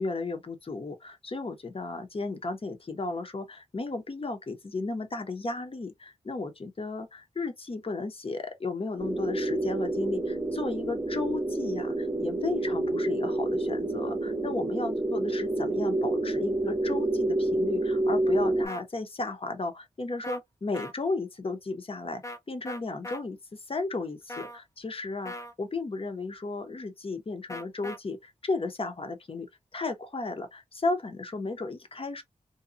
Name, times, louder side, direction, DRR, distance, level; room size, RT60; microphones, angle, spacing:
voice 1, 0.0-32.2, left 3 dB, 45° left, 0.9 m, -34 dB
sound 1, 9.0-18.7, right 2 dB, 25° right, 0.7 m, -28 dB
sound 2, 18.7-18.8 20.2-20.4 20.7-20.9 22.2-22.4 22.7-23.2 24.3-24.6 25.3-25.5 27.5-28.0, left 1 dB, 25° left, 0.5 m, -39 dB
2.8 x 2.3 x 2.4 m
cardioid pair, 55°, 14 cm